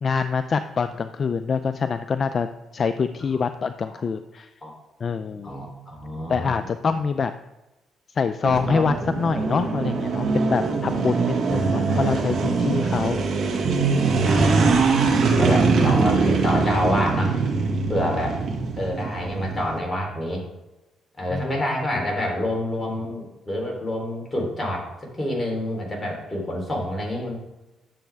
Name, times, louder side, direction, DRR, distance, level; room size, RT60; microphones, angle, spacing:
voice 1, 0.0-2.5 2.7-4.5 5.0-5.6 6.3-7.3 8.1-13.2 21.3-21.5 21.9-22.0, left 5 dB, 45° left, 10 dB, 0.4 m, -25 dB
voice 2, 5.4-6.5 11.5-12.5 14.2-15.0 15.4-17.4 17.9-18.3 18.8-20.4 21.2-27.4, equal, 15° left, -1 dB, 3.3 m, -27 dB
sound 1, 8.4-19.8, right 4 dB, 65° right, 2.0 m, -22 dB
10.0 x 7.2 x 3.5 m, 1.0 s
cardioid pair, 90°, 0 cm